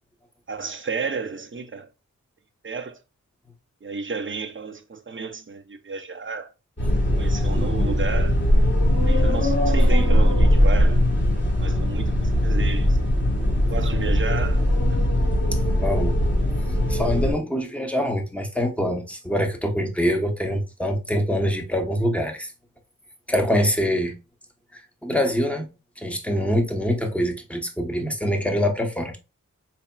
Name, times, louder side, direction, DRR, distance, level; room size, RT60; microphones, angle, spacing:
voice 1, 0.5-1.9 2.6-3.0 3.8-6.5 7.2-8.4 9.0-11.0 11.6-13.0 13.7-14.6 14.9-15.0, right 4 dB, 35° right, 0.6 m, -32 dB
sound 1, 6.8-17.3, equal, 35° left, 1.6 m, -20 dB
voice 2, 15.8-16.2 16.9-22.5 23.3-24.1 25.0-25.7 26.0-29.1, equal, 5° left, 0.9 m, -24 dB
4.1 x 3.4 x 2.2 m
wide cardioid pair, 55°, 33 cm